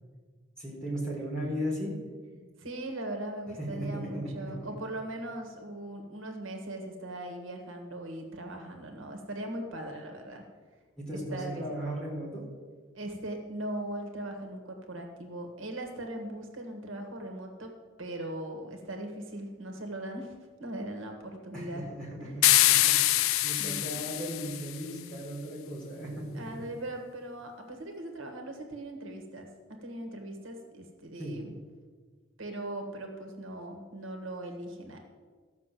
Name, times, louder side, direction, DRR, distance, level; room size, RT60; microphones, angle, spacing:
voice 1, 0.6-1.9 3.7-4.7 11.0-12.4 21.5-26.4 31.2-31.4, equal, 5° left, -5 dB, 4.2 m, -36 dB
voice 2, 2.6-10.4 11.3-11.6 12.9-21.8 22.2-22.5 23.6-24.0 26.4-31.5 32.4-35.0, right 1 dB, 70° right, 4 dB, 1.6 m, -39 dB
sound 1, 22.4-24.8, left 14 dB, 85° left, 0.4 m, -24 dB
14.0 x 6.2 x 7.5 m, 1.5 s
head